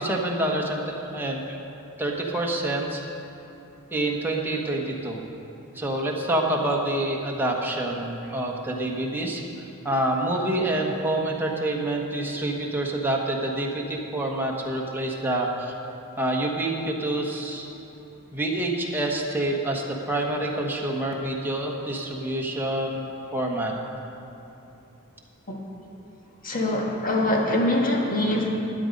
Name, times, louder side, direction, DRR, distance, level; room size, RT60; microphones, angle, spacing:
voice 1, 0.0-1.4 2.0-3.0 3.9-5.2 5.7-9.4 9.8-15.7 16.2-17.7 18.3-23.1 23.3-23.7, right 1 dB, 10° right, -1 dB, 1.2 m, -27 dB
voice 2, 26.4-28.5, left 1 dB, 40° left, 0 dB, 1.5 m, -23 dB
12.5 x 9.6 x 5.3 m, 2.9 s
head